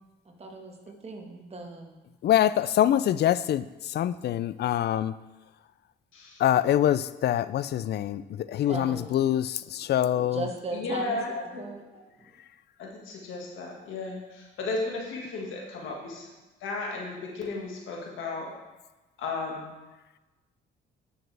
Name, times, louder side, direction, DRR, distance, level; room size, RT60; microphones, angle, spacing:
voice 1, 0.2-1.9 8.7-9.2 10.1-11.2 11.4-12.3, right 2 dB, 30° right, 2 dB, 1.5 m, -38 dB
voice 2, 2.2-5.1 6.4-10.4, left 11 dB, 55° left, 15 dB, 0.4 m, -25 dB
voice 3, 6.1-6.4 10.7-11.6 12.8-16.3 16.6-18.5 19.2-19.7, left 3 dB, 80° left, -1 dB, 1.8 m, -34 dB
11.0 x 6.4 x 3.4 m, 1.1 s
cardioid pair, 90°, 20 cm